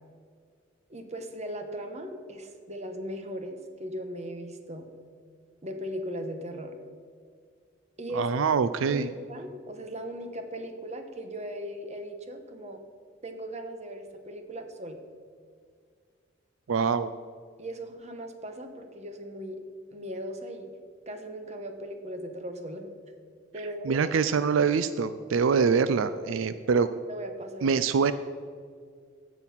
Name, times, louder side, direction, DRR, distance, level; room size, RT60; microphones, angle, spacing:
voice 1, 0.9-4.9 5.6-6.8 8.0-8.4 8.9-12.8 13.2-15.0 17.6-19.6 19.9-20.7 21.1-22.9 23.5-24.2 27.1-27.8, equal, 35° right, 6 dB, 1.2 m, -38 dB
voice 2, 8.1-9.1 16.7-17.1 23.8-26.9 27.6-28.1, right 5 dB, 85° right, 13 dB, 0.4 m, -24 dB
16.0 x 6.3 x 5.8 m, 2.1 s
head